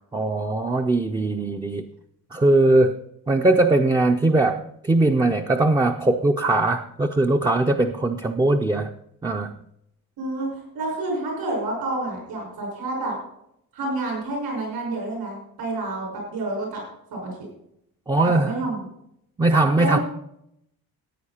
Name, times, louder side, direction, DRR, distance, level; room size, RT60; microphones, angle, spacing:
voice 1, 0.1-1.9 2.3-3.0 3.3-8.9 9.2-9.5 18.1-18.6 19.4-20.0, right 2 dB, 10° right, 4 dB, 0.4 m, -20 dB
voice 2, 10.2-13.1 13.7-16.8 17.1-17.3 18.2-18.8 19.7-20.0, right 2 dB, 75° right, -1 dB, 5.8 m, -29 dB
14.5 x 9.1 x 4.3 m, 0.76 s
cardioid pair, 165°, 38 cm